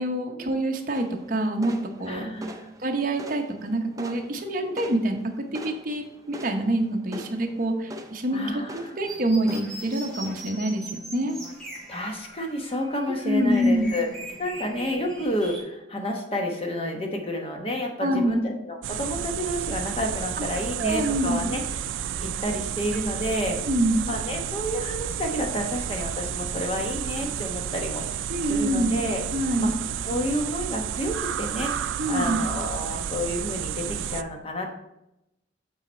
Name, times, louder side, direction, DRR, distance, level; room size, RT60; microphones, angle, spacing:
voice 1, 0.0-1.7 2.0-2.3 2.8-11.4 13.2-13.9 18.0-18.4 20.4-20.5 20.8-21.4 23.7-24.1 28.3-29.0 29.3-29.7 32.0-32.4, right 1 dB, 45° right, 3 dB, 0.9 m, -26 dB
sound 1, 0.9-9.6, equal, 20° right, 0.4 m, -43 dB
voice 2, 2.1-2.7 4.6-4.7 7.1-7.2 8.3-8.9 11.9-14.1 14.4-21.6 22.2-23.6 24.0-28.0 28.4-29.2 29.6-29.7 30.0-34.8, equal, 30° left, 2 dB, 1.0 m, -30 dB
sound 2, 9.0-15.6, right 1 dB, 5° left, 1.7 m, -41 dB
sound 3, 18.8-34.2, right 9 dB, 80° right, 0.3 m, -31 dB
7.9 x 4.1 x 4.3 m, 0.88 s
head